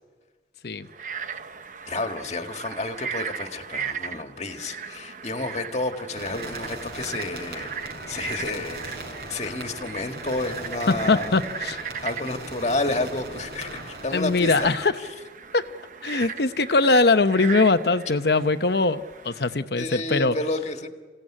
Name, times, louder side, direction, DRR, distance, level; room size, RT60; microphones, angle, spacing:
Frog, 0.9-19.6, right 6 dB, 45° right, 0.8 m, -38 dB
voice 1, 1.9-7.7 8.1-11.4 12.0-15.1 16.2-16.4 19.8-20.9, left 2 dB, 40° left, 5 dB, 1.8 m, -30 dB
sound 1, 6.2-14.7, right 2 dB, 60° right, 6.2 m, -38 dB
voice 2, 10.9-11.9 14.1-14.9 15.5-15.7 16.0-20.4, left 3 dB, 65° left, 10 dB, 0.9 m, -21 dB
28.0 x 17.0 x 9.9 m, 1.5 s
head